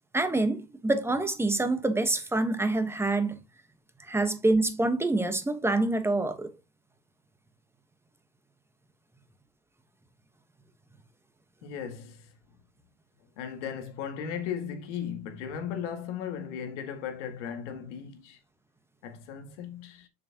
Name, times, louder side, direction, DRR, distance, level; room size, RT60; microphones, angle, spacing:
voice 1, 0.1-3.4 4.1-6.5, right 2 dB, 5° right, 1.1 m, -26 dB
voice 2, 11.6-12.3 13.4-18.4 19.0-20.1, left 8 dB, 80° left, 2.1 m, -36 dB
6.9 x 6.3 x 2.9 m
supercardioid pair, 120°, 35 cm